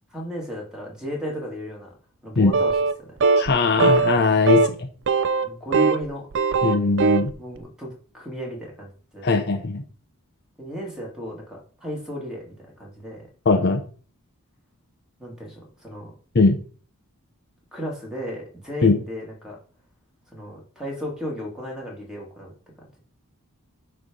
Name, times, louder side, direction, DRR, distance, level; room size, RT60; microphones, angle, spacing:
voice 1, 0.1-1.9 2.2-2.7 5.4-6.3 7.4-9.6 10.6-13.2 15.2-16.1 17.7-19.6 20.3-22.5, equal, 5° right, -2 dB, 2.4 m, -35 dB
sound 1, 2.5-3.0 3.2-3.5 3.8-4.2 4.5-4.7 5.1-6.0 6.3-7.3, right 4 dB, 55° right, 0.5 m, -19 dB
voice 2, 3.4-4.7 6.6-7.3 9.2-9.8 13.5-13.8 16.3-16.6 18.8-18.9, left 4 dB, 50° left, 5 dB, 0.7 m, -19 dB
9.8 x 3.3 x 5.3 m, 0.42 s
head